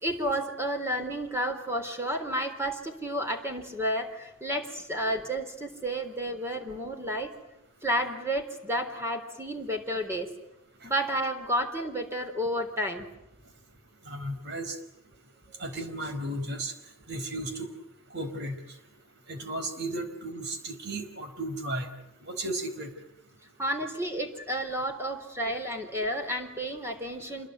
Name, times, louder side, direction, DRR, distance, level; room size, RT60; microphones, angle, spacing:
voice 1, 0.0-7.3 7.8-10.3 10.8-13.1 23.6-27.5, equal, 10° right, 5 dB, 3.7 m, -31 dB
voice 2, 14.1-14.8 15.6-16.7 17.1-17.7 18.1-18.6 19.3-21.9 22.3-22.9, right 1 dB, 55° right, 8 dB, 4.5 m, -34 dB
27.5 x 22.0 x 9.2 m, 0.84 s
head